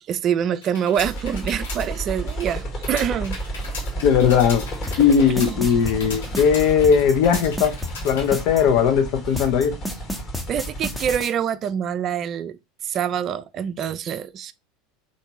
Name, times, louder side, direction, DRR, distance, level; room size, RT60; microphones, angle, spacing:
voice 1, 0.1-3.4 5.4-5.6 10.5-14.5, right 9 dB, 40° right, 0.3 m, -25 dB
sound 1, 0.6-8.4, left 3 dB, 75° left, 1.3 m, -38 dB
sound 2, 1.0-11.2, right 1 dB, 40° left, 1.3 m, -32 dB
voice 2, 4.0-4.6 5.0-7.8 8.0-9.7, left 7 dB, 55° left, 0.7 m, -18 dB
sound 3, 4.9-8.6 9.4-11.3, left 1 dB, 5° left, 0.7 m, -31 dB
3.4 x 2.6 x 2.9 m
figure-of-eight pair, 75°, 0 cm